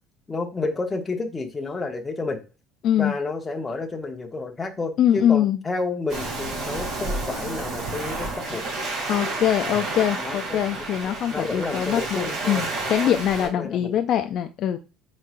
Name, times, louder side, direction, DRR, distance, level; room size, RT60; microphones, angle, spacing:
voice 1, 0.3-2.4 3.0-8.6 10.2-12.6 13.4-13.9, left 3 dB, 15° left, 3 dB, 0.9 m, -30 dB
voice 2, 2.8-3.1 5.0-5.6 9.1-14.8, left 10 dB, 50° left, 6 dB, 0.4 m, -23 dB
Waves surf, 6.1-13.5, right 2 dB, 50° right, 2.3 m, -30 dB
4.6 x 4.3 x 2.4 m, 0.31 s
cardioid pair, 145°, 0 cm